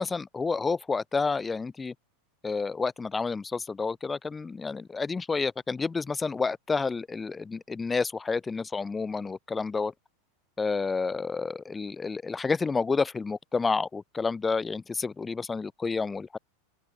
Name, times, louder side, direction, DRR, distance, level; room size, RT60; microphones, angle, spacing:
voice 1, 0.0-1.9 2.4-9.9 10.6-16.4, left 4 dB, 15° left, 2.4 m, -30 dB
open air
hypercardioid pair, 100°, 0 cm